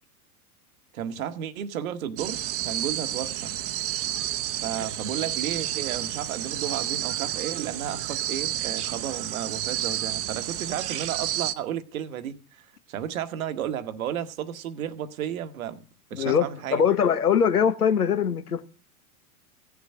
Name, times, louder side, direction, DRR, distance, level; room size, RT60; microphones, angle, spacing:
voice 1, 0.9-3.5 4.6-15.8 16.1-16.8, right 9 dB, 65° right, 1.2 m, -33 dB
sound 1, 2.2-11.5, right 12 dB, 30° right, 0.8 m, -30 dB
voice 2, 16.1-18.7, left 7 dB, 85° left, 1.3 m, -22 dB
16.0 x 7.1 x 6.6 m
figure-of-eight pair, 95°, 45 cm